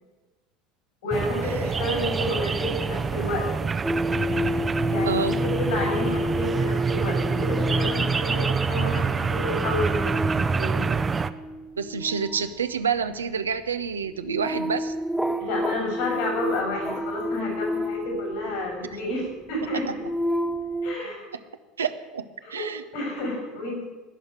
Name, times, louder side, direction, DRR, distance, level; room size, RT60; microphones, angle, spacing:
voice 1, 1.0-3.5 4.9-10.9 15.4-20.0 20.8-21.3 22.4-23.9, left 1 dB, 65° left, 1 dB, 6.9 m, -30 dB
sound 1, 1.1-11.3, right 5 dB, 25° right, 0.7 m, -26 dB
sound 2, 3.8-19.0 19.6-20.9, left 1 dB, ahead, 1.0 m, -30 dB
voice 2, 5.1-5.4 11.8-14.9 21.8-22.8, right 6 dB, 80° right, 10 dB, 0.7 m, -28 dB
18.0 x 6.5 x 9.5 m, 1.2 s
figure-of-eight pair, 70°, 0 cm